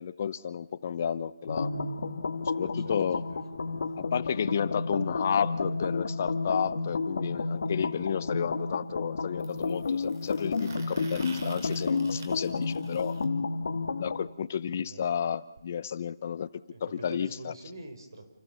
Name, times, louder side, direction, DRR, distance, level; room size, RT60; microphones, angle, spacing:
voice 1, 0.0-1.7 2.5-3.2 4.1-13.2 14.0-16.5 16.8-17.5, left 7 dB, 35° left, 15 dB, 0.6 m, -31 dB
sound 1, 1.5-14.2, left 3 dB, 60° left, 1.8 m, -31 dB
voice 2, 2.4-3.0 3.3-3.8 14.8-15.0 16.7-18.2, right 2 dB, 70° right, 7 dB, 5.4 m, -46 dB
sound 2, 7.4-7.5 9.4-13.2 15.2-15.3 15.6-15.7 15.9-16.0 17.0-17.1, right 4 dB, 45° right, 2.7 m, -49 dB
29.0 x 14.5 x 7.0 m, 0.95 s
hypercardioid pair, 170°, 2 cm